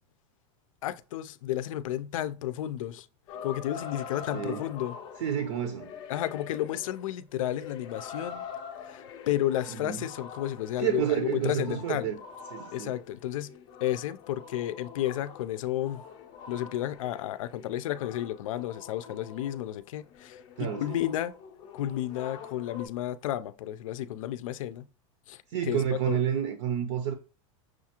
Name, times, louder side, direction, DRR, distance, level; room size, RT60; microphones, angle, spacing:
voice 1, 0.8-3.1 3.4-5.0 6.1-8.4 8.8-12.1 12.7-13.5 13.8-16.0 16.5-21.3 21.7-24.9 25.3-25.8 26.1-26.2, left 12 dB, 75° left, 0.5 m, -32 dB
sound 1, 3.3-19.8 20.1-22.9, left 7 dB, 25° left, 0.5 m, -45 dB
voice 2, 5.2-5.9 9.7-10.0 10.8-12.2 12.5-12.9 20.6-21.0 25.5-27.1, right 9 dB, 60° right, 0.7 m, -29 dB
6.2 x 2.4 x 2.9 m
supercardioid pair, 170°, 17 cm